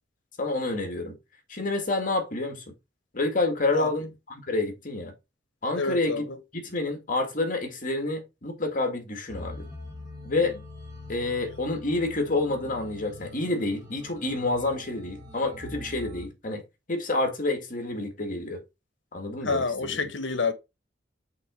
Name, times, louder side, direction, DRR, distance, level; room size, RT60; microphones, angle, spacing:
voice 1, 0.4-1.2 1.5-2.6 3.1-5.1 5.6-6.3 6.5-9.7 10.2-10.6 11.1-16.6 16.9-18.6 19.1-20.1, left 2 dB, 45° left, 2.0 m, -28 dB
voice 2, 5.7-6.4 19.4-20.5, left 4 dB, 75° left, 1.1 m, -28 dB
sound 1, 9.3-16.3, left 2 dB, 20° right, 2.0 m, -43 dB
5.9 x 3.9 x 5.0 m
head